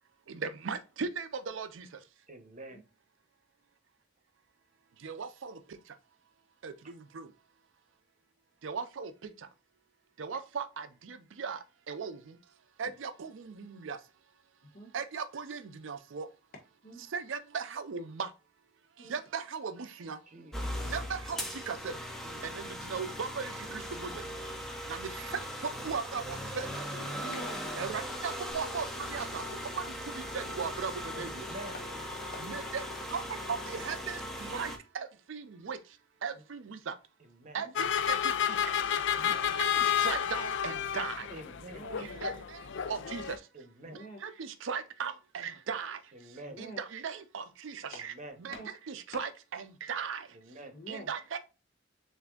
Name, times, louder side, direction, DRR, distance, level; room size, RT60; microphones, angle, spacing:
voice 1, 0.3-2.0 5.0-6.0 6.6-7.3 8.6-9.5 10.2-12.4 12.8-14.0 14.9-16.3 17.1-18.3 19.0-20.2 20.8-22.0 22.4-24.4 24.8-26.7 27.8-31.5 32.4-37.0 37.5-38.9 39.2-41.3 42.0-43.5 43.9-48.1 48.4-48.5 48.9-50.4 50.9-51.4, right 5 dB, 70° right, 0.5 m, -38 dB
voice 2, 2.3-2.8 20.3-20.6 22.2-22.5 31.1-31.8 37.2-37.6 41.3-41.9 43.5-44.0 46.1-46.6 47.9-48.4 50.3-50.7, right 1 dB, 40° right, 0.9 m, -47 dB
voice 3, 14.6-14.9 16.8-17.0 19.0-19.1 20.6-20.9 26.9-27.8 31.7-32.0 32.3-32.6 36.3-36.4 37.4-37.7 41.7-42.2 43.8-44.2 46.4-46.8 48.5-48.7 50.7-51.1, equal, 50° left, 1.4 m, -46 dB
sound 1, 20.5-34.8, equal, ahead, 0.7 m, -39 dB
sound 2, 37.8-43.4, left 8 dB, 65° left, 0.4 m, -31 dB
6.7 x 2.6 x 2.4 m
head